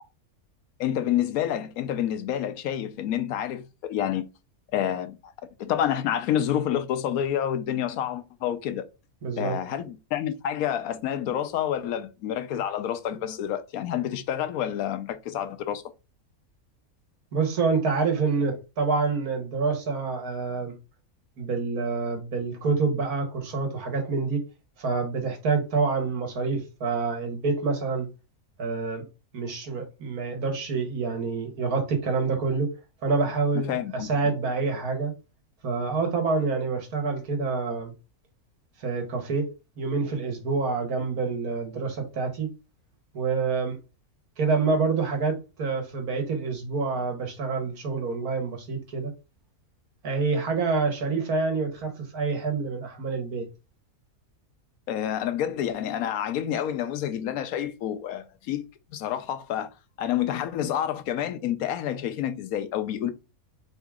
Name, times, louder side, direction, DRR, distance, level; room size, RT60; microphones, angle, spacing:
voice 1, 0.8-4.2 4.7-5.3 5.6-8.8 9.4-15.8 33.7-34.1 54.9-58.6 58.9-59.7 60.0-63.1, left 10 dB, 80° left, 1.1 m, -28 dB
voice 2, 9.2-9.6 17.3-20.8 21.4-24.4 24.8-28.1 28.6-29.0 29.3-32.7 33.0-35.1 35.6-37.9 38.8-39.5 39.8-42.5 43.1-43.8 44.4-49.1 50.0-53.5, right 4 dB, 85° right, 1.8 m, -27 dB
4.0 x 3.6 x 3.5 m
omnidirectional pair, 1.5 m